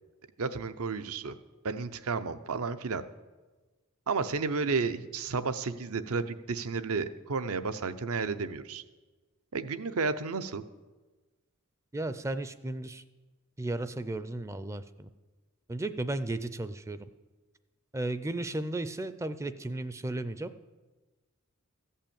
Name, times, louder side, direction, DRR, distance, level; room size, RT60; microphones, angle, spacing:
voice 1, 0.4-1.3 1.6-3.0 4.1-8.8 9.5-10.6, right 4 dB, 75° right, 11 dB, 0.7 m, -32 dB
voice 2, 11.9-13.0 13.6-15.1 15.7-17.0 17.9-20.5, right 2 dB, 15° right, 12 dB, 0.4 m, -34 dB
14.5 x 5.6 x 8.7 m, 1.2 s
head